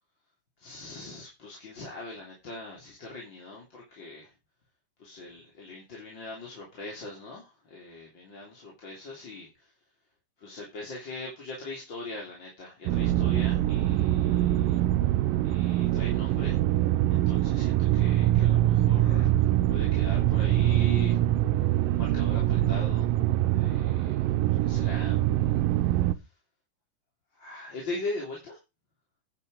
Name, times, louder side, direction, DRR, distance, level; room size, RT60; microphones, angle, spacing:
voice 1, 0.6-4.3 5.0-9.7 10.4-14.8 15.4-16.6 17.1-21.2 21.5-23.1 23.5-24.3 24.6-25.8 26.1-26.3 27.3-28.6, left 2 dB, 30° left, -3 dB, 3.7 m, -41 dB
sound 1, 12.9-26.1, right 14 dB, 80° right, 2.3 m, -24 dB
10.0 x 8.8 x 5.1 m, 0.27 s
omnidirectional pair, 4.1 m